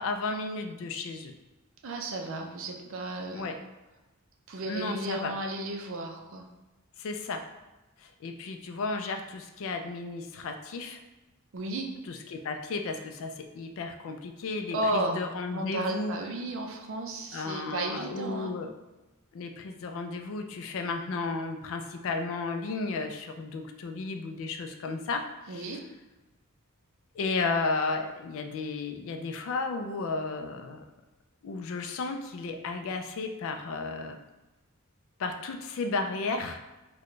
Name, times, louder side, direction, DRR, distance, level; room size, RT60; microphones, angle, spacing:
voice 1, 0.0-1.3 3.3-3.6 4.7-5.3 7.0-7.4 8.0-11.0 12.1-16.2 17.3-18.7 19.3-25.8 27.2-30.8 31.4-34.2 35.2-36.6, left 3 dB, 65° left, 6 dB, 0.4 m, -33 dB
voice 2, 1.8-3.6 4.5-6.5 11.5-11.9 14.7-15.2 15.5-18.6 25.5-25.9, right 2 dB, 65° right, 2 dB, 0.5 m, -33 dB
4.0 x 2.2 x 3.1 m, 1.1 s
head